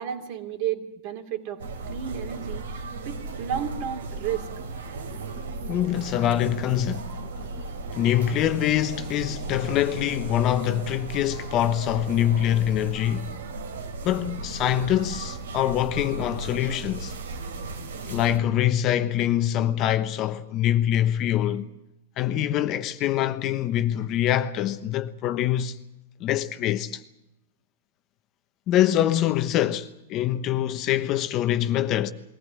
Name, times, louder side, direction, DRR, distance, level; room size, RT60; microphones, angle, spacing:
voice 1, 0.0-1.6 1.9-2.7 3.0-4.5, right 9 dB, 50° right, 3.2 m, -32 dB
sound 1, 1.6-18.4, right 3 dB, 85° right, 3.8 m, -36 dB
voice 2, 5.7-7.2 7.9-13.3 14.0-17.1 18.1-21.7 22.2-25.8 26.2-27.0 28.7-32.1, left 11 dB, 35° left, 1.1 m, -24 dB
22.5 x 15.0 x 9.7 m
hypercardioid pair, 135°, 0 cm